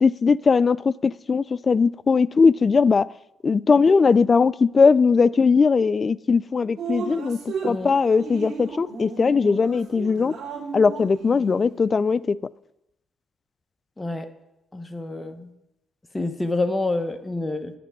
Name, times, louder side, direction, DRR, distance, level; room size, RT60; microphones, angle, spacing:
voice 1, 0.0-3.1 3.4-10.3 10.7-12.4, left 5 dB, 35° left, 0.3 m, -19 dB
Drip, 6.8-12.0, right 5 dB, 70° right, 2.1 m, -35 dB
voice 2, 14.7-15.5 16.1-17.7, left 2 dB, 15° left, 1.1 m, -27 dB
8.5 x 6.0 x 8.1 m
cardioid pair, 90°, 0 cm